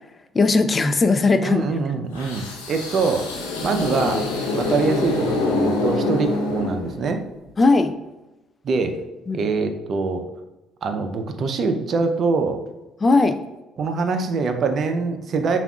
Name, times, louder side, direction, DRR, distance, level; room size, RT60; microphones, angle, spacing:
voice 1, 0.3-1.6 7.6-7.9 9.3-9.4 13.0-13.4, left 3 dB, 35° left, 10 dB, 0.4 m, -18 dB
voice 2, 1.4-3.3 3.6-4.3 4.5-7.2 8.6-9.0 9.3-10.3 10.8-12.6 13.8-15.6, right 4 dB, 55° right, 7 dB, 0.5 m, -24 dB
sound 1, 2.1-7.2, left 2 dB, 90° left, 0.7 m, -25 dB
6.9 x 2.5 x 2.3 m, 1.0 s
hypercardioid pair, 55°, 0 cm